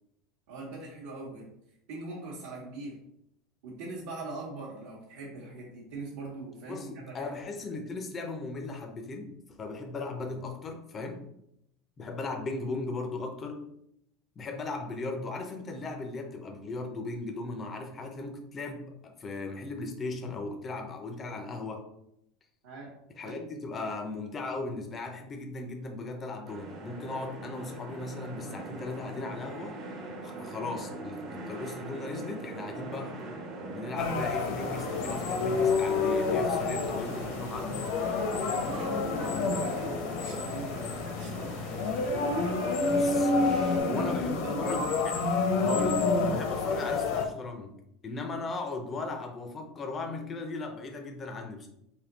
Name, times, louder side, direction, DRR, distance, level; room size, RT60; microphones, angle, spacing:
voice 1, 0.5-1.5 1.9-3.0 3.6-7.4 22.6-23.0 23.2-23.5 36.4-37.1 38.5-41.6 43.8-44.8, right 2 dB, 70° right, -6 dB, 1.0 m, -41 dB
voice 2, 6.7-11.2 12.0-13.7 14.4-21.8 23.1-29.8 30.2-37.8 42.9-43.3 43.8-45.1 45.6-47.7 48.0-51.7, left 3 dB, 20° left, 3 dB, 0.4 m, -37 dB
sound 1, 26.4-43.8, right 2 dB, 35° right, 0.7 m, -41 dB
sound 2, 34.0-47.2, left 3 dB, 60° left, 0.6 m, -29 dB
3.5 x 2.6 x 3.8 m, 0.77 s
cardioid pair, 170°, 0 cm